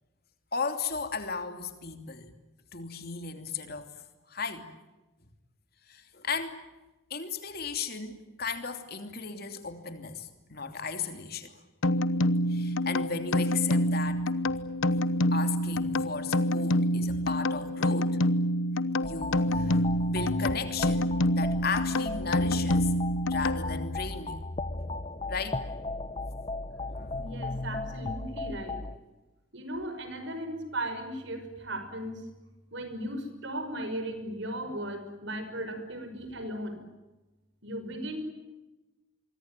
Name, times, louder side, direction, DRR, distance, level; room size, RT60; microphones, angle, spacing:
voice 1, 0.5-2.3 2.7-3.9 4.3-4.7 5.9-6.6 7.1-11.6 12.5-14.3 15.3-18.2 19.0-22.9 23.3-24.5 25.3-25.6 26.9-27.5, left 5 dB, 45° left, 7 dB, 3.0 m, -36 dB
sound 1, 11.8-24.0, left 1 dB, 70° left, 1.0 m, -27 dB
sound 2, 19.0-29.0, left 2 dB, 25° left, 0.9 m, -36 dB
voice 2, 27.1-28.8 29.5-32.2 32.7-36.8 37.6-38.2, right 1 dB, 60° right, 9 dB, 5.7 m, -36 dB
26.0 x 24.0 x 9.1 m, 1.1 s
head